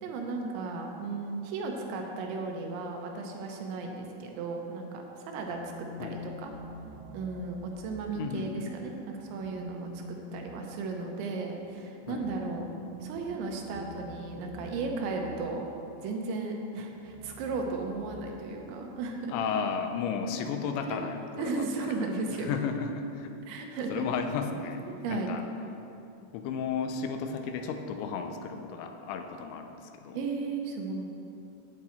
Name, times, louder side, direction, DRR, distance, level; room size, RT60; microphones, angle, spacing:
voice 1, 0.0-5.7 6.0-6.5 7.1-12.7 13.0-15.7 16.0-19.3 20.9-21.0 21.4-22.5 23.5-24.1 24.9-25.3 30.1-31.1, right 3 dB, 85° right, 2 dB, 3.2 m, -35 dB
sound 1, 5.2-8.5 9.2-15.8 16.8-18.7, equal, 45° right, 1.1 m, -46 dB
voice 2, 8.1-8.7 12.1-12.3 19.3-21.9 22.4-23.4 23.9-24.8 25.1-25.4 26.3-30.2, left 6 dB, 85° left, 6 dB, 2.9 m, -34 dB
8.6 x 8.4 x 4.3 m, 2.8 s
omnidirectional pair, 5.1 m